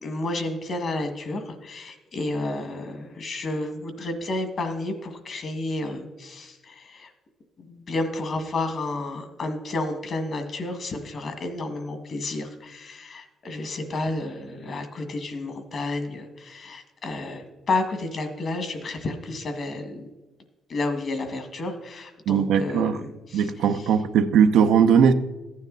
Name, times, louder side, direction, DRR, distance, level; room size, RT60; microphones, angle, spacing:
voice 1, 0.0-7.1 7.6-20.1 20.7-23.9, left 2 dB, 55° left, 7 dB, 1.8 m, -31 dB
voice 2, 22.3-23.0 23.3-25.1, right 7 dB, 85° right, 8 dB, 0.7 m, -19 dB
14.5 x 9.5 x 4.0 m, 1.1 s
cardioid pair, 90°, 0 cm